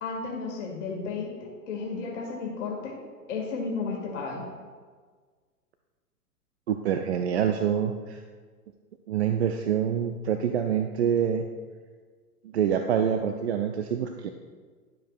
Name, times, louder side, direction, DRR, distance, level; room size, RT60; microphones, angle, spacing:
voice 1, 0.0-3.0 3.3-4.4, left 4 dB, 50° left, -1 dB, 2.2 m, -33 dB
voice 2, 6.7-8.2 9.1-11.4 12.5-14.3, right 8 dB, 45° right, 6 dB, 0.5 m, -26 dB
11.5 x 7.1 x 2.4 m, 1.5 s
figure-of-eight pair, 110°, 47 cm